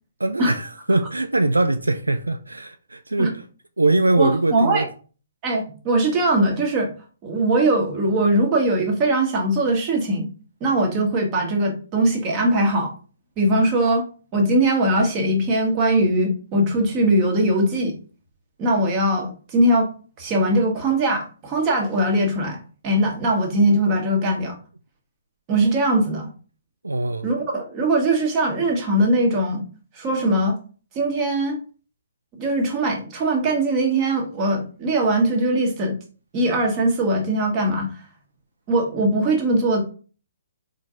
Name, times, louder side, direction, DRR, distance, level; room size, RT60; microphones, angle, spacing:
voice 1, 0.2-3.4 3.8-4.9 26.8-27.3, right 2 dB, 80° right, 0.3 m, -21 dB
voice 2, 4.2-4.9 5.4-6.9 7.2-10.3 10.6-12.9 13.4-14.1 14.3-17.9 18.6-19.9 20.2-24.6 25.5-26.3 27.2-29.6 29.9-30.6 30.9-31.6 32.4-36.0 36.3-37.9 38.7-39.8, right 1 dB, 25° right, 1.2 m, -21 dB
4.4 x 2.7 x 3.7 m
figure-of-eight pair, 130°, 0 cm